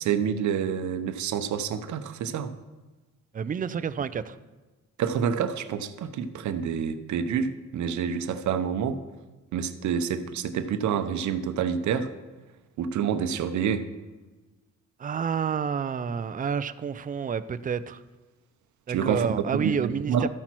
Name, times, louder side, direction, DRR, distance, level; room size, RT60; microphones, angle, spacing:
voice 1, 0.0-2.5 5.0-9.0 9.5-12.1 12.8-13.9 18.9-20.3, right 7 dB, 70° right, 10 dB, 0.8 m, -28 dB
voice 2, 3.3-4.4 15.0-18.0 18.9-20.3, right 7 dB, 30° right, 13 dB, 0.5 m, -29 dB
13.0 x 5.9 x 4.5 m, 1.2 s
cardioid pair, 90°, 30 cm